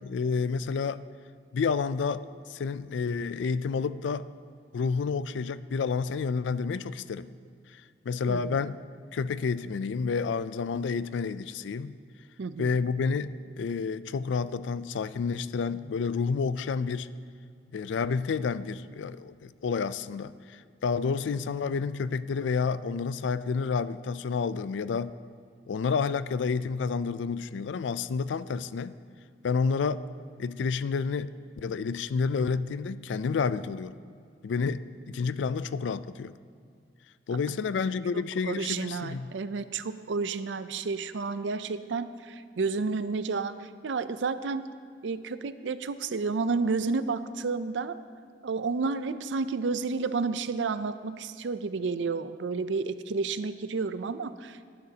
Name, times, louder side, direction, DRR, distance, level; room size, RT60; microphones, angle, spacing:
voice 1, 0.0-1.0 1.5-4.3 4.7-7.3 7.7-7.8 8.1-8.8 9.1-12.0 12.6-17.1 17.7-25.1 25.7-28.9 29.4-30.0 30.4-34.0 34.4-36.3 37.3-39.3, left 5 dB, 85° left, 15 dB, 0.4 m, -30 dB
voice 2, 8.3-8.6 12.4-12.7 38.1-44.7 45.0-48.0 48.4-54.7, right 4 dB, 80° right, 13 dB, 0.5 m, -31 dB
18.5 x 10.5 x 2.8 m, 2.2 s
head